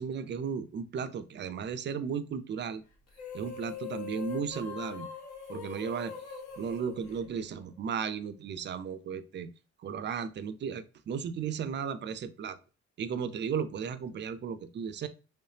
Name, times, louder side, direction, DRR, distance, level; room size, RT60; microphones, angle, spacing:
voice 1, 0.0-2.8 3.3-5.1 5.5-6.1 6.6-9.5 9.8-12.6 13.0-15.1, right 7 dB, 40° right, 12 dB, 0.4 m, -35 dB
sound 1, 3.1-7.8, left 6 dB, 65° left, 1.4 m, -42 dB
3.2 x 3.1 x 2.8 m, 0.33 s
cardioid pair, 90°, 30 cm